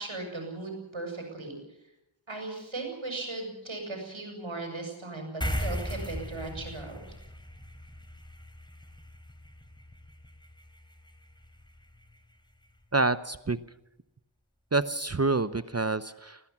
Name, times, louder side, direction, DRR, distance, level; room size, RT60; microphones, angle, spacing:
voice 1, 0.0-1.6 2.3-6.9, right 2 dB, 70° right, 3 dB, 7.9 m, -37 dB
sound 1, 5.4-12.2, equal, 10° left, 3.7 m, -38 dB
voice 2, 12.9-13.6 14.7-16.4, right 3 dB, 30° right, 13 dB, 0.8 m, -27 dB
21.0 x 18.5 x 7.3 m, 0.88 s
wide cardioid pair, 50°, 49 cm